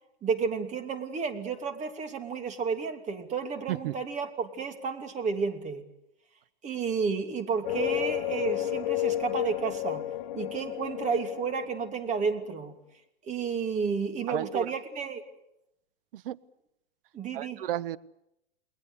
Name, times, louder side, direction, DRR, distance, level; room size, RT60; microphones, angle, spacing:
voice 1, 0.2-5.8 6.6-10.0 10.3-12.7 13.2-15.2 17.1-17.6, right 5 dB, 20° right, 2.9 m, -31 dB
sound 1, 7.6-12.4, left 13 dB, 50° left, 1.4 m, -32 dB
voice 2, 14.3-14.7 16.1-16.4 17.3-18.0, right 13 dB, 60° right, 1.2 m, -33 dB
29.0 x 20.5 x 8.3 m
hypercardioid pair, 130°, 32 cm